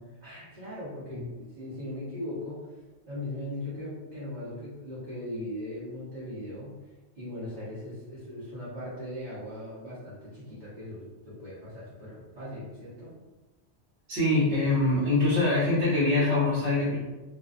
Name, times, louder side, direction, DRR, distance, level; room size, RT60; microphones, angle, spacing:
voice 1, 0.2-2.8 3.1-13.2, left 1 dB, 45° right, -12 dB, 0.9 m, -39 dB
voice 2, 14.1-17.0, left 2 dB, 65° right, -9 dB, 1.1 m, -24 dB
2.6 x 2.2 x 2.4 m, 1.1 s
omnidirectional pair, 1.2 m